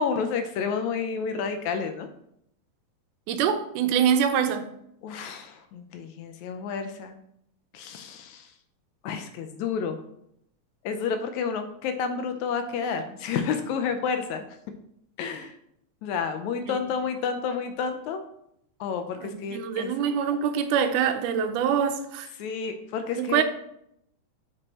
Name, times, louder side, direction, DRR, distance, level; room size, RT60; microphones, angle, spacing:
voice 1, 0.0-2.1 5.0-7.2 7.7-8.5 9.0-10.0 10.8-14.5 15.2-15.5 16.0-18.2 18.8-19.9 22.4-23.4, left 6 dB, 80° left, 1.9 m, -30 dB
voice 2, 3.3-4.7 16.7-16.8 19.2-22.3 23.2-23.4, right 8 dB, 85° right, 2.2 m, -25 dB
7.7 x 6.1 x 2.9 m
omnidirectional pair, 3.5 m